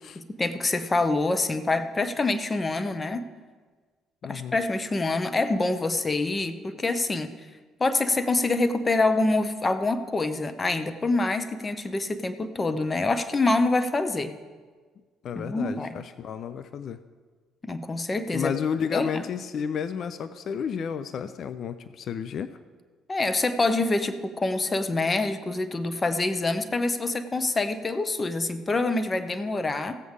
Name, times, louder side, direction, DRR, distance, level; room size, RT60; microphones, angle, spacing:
voice 1, 0.1-3.3 4.2-7.3 7.8-14.3 15.3-16.0 17.6-18.5 18.9-19.2 23.1-30.0, left 2 dB, 25° left, 10 dB, 1.0 m, -26 dB
voice 2, 4.2-4.6 15.2-17.0 18.3-22.6, left 7 dB, 55° left, 11 dB, 0.5 m, -32 dB
15.0 x 8.0 x 5.0 m, 1.5 s
hypercardioid pair, 50°, 0 cm